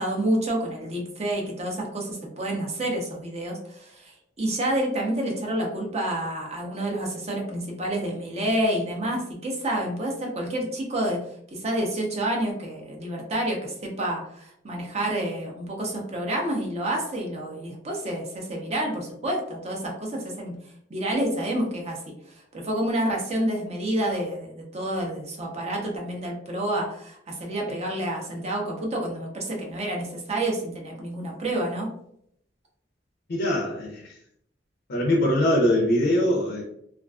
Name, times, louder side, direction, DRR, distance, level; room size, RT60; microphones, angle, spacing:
voice 1, 0.0-11.3 11.5-20.6 20.9-22.1 22.5-31.9, right 1 dB, 35° right, 0 dB, 0.6 m, -29 dB
voice 2, 33.3-34.2 34.9-36.6, left 1 dB, 55° left, 0 dB, 0.4 m, -22 dB
2.3 x 2.3 x 2.3 m, 0.72 s
head